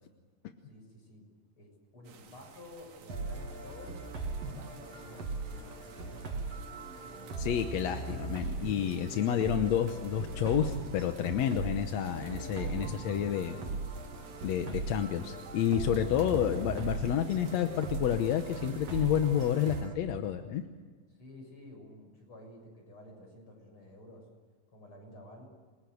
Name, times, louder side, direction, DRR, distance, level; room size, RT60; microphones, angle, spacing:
voice 1, 0.6-1.2 1.6-4.0 4.4-6.6 21.1-24.2 24.7-25.5, left 1 dB, 35° left, 2 dB, 7.5 m, -52 dB
sound 1, 2.0-19.8, right 3 dB, 70° right, 3.4 m, -50 dB
sound 2, 3.1-19.9, right 3 dB, 50° right, 3.9 m, -39 dB
voice 2, 7.4-13.6 14.4-20.6, left 9 dB, 65° left, 7 dB, 1.9 m, -30 dB
28.5 x 21.0 x 8.0 m, 1.4 s
omnidirectional pair, 3.9 m